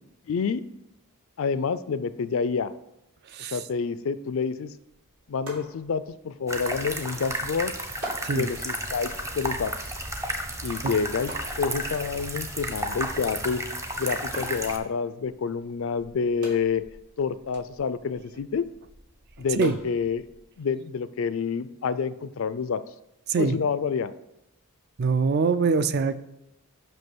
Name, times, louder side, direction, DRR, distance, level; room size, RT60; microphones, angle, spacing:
voice 1, 0.3-0.6 1.4-2.7 3.5-4.7 5.3-7.7 8.3-9.9 10.6-11.3 11.6-13.6 14.0-16.8 17.2-18.6 19.4-20.3 20.6-22.8 23.4-24.1, left 5 dB, 60° left, 14 dB, 0.4 m, -28 dB
sound 1, 4.8-20.6, right 1 dB, 85° right, 3.0 m, -48 dB
sound 2, 6.5-14.8, right 1 dB, 15° right, 0.6 m, -32 dB
voice 2, 25.0-26.2, right 4 dB, 45° right, 14 dB, 0.4 m, -23 dB
5.9 x 5.3 x 6.1 m, 0.89 s
head